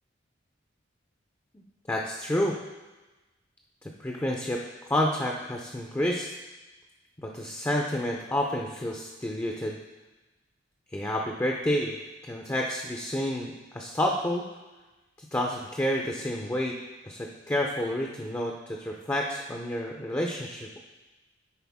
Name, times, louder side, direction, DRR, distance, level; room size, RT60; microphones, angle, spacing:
voice 1, 1.9-2.6 3.8-4.6 4.9-6.3 7.2-9.8 10.9-11.9 12.2-14.4 15.2-16.8 17.0-20.8, left 1 dB, 15° left, 0 dB, 0.5 m, -29 dB
10.0 x 4.3 x 3.6 m, 1.1 s
head